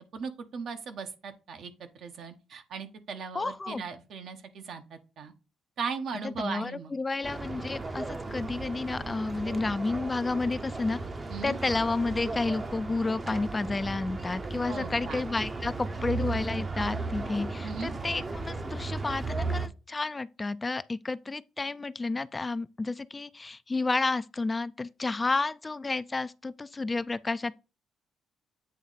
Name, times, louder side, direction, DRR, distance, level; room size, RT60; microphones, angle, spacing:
voice 1, 0.0-5.3 5.8-6.9 11.3-11.6 14.7-15.2 17.6-17.9, right 5 dB, 65° right, 1.0 m, -38 dB
voice 2, 3.3-3.8 6.2-11.0 11.4-27.5, left 3 dB, 25° left, 0.3 m, -31 dB
sound 1, 7.2-19.7, right 3 dB, 30° right, 0.7 m, -35 dB
8.5 x 3.1 x 4.0 m
cardioid pair, 90°, 0 cm